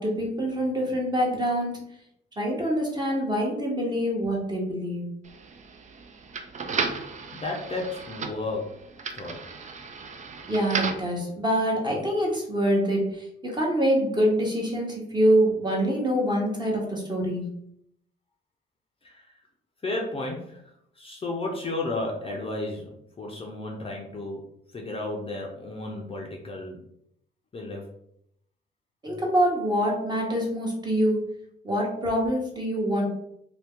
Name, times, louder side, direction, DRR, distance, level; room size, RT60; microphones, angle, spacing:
voice 1, 0.0-1.8 2.4-5.2 10.5-17.5 29.0-31.2 31.6-33.0, equal, 20° right, -2 dB, 1.1 m, -25 dB
sound 1, 5.2-11.1, right 5 dB, 35° right, 0.4 m, -34 dB
voice 2, 7.3-8.8 9.1-9.6 19.0-19.3 19.8-20.6 21.0-24.4 24.7-26.8 27.5-27.8, left 2 dB, 30° left, -1 dB, 0.6 m, -33 dB
2.8 x 2.2 x 3.5 m, 0.73 s
cardioid pair, 90°, 20 cm